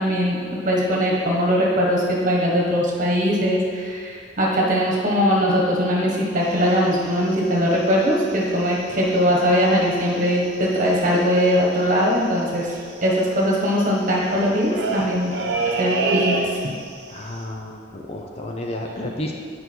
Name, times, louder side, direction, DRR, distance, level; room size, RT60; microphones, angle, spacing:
voice 1, 0.0-15.3 15.7-16.5, equal, 40° right, -3 dB, 1.4 m, -20 dB
sound 1, 6.4-8.7 9.0-9.2 9.5-10.0 10.3-10.4 10.5-16.9 17.2-17.4, right 3 dB, 60° right, 0.9 m, -29 dB
voice 2, 17.1-19.3, left 1 dB, 30° left, 1 dB, 0.6 m, -31 dB
9.1 x 5.2 x 4.6 m, 2.1 s
head